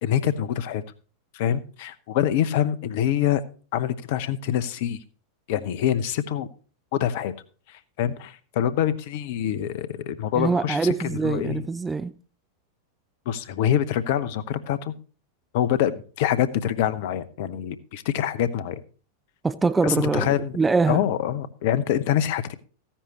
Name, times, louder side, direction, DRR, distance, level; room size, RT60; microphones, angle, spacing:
voice 1, 0.0-0.8 1.3-3.4 3.7-5.0 5.5-6.5 6.9-7.3 7.7-10.9 11.2-11.6 13.3-14.9 15.5-18.8 19.8-20.6 20.9-22.5, left 10 dB, 50° left, 0.8 m, -25 dB
voice 2, 10.4-12.1 19.4-21.0, right 4 dB, 10° right, 0.5 m, -24 dB
14.5 x 10.0 x 2.9 m
figure-of-eight pair, 90°, 0 cm